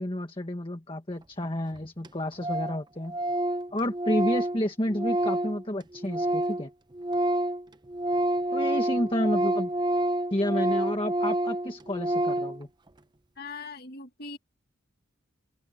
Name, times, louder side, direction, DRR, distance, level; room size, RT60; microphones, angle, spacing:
voice 1, 0.0-3.2 3.7-6.7 8.5-9.7 10.3-12.7, left 1 dB, 25° left, 1.6 m, -30 dB
Organ, 1.4-1.5 1.7-1.8 2.0-2.1 2.4-2.8 3.1-6.7 6.9-12.6, right 1 dB, 20° right, 0.6 m, -28 dB
voice 2, 13.4-14.4, left 3 dB, 50° left, 2.0 m, -40 dB
open air
head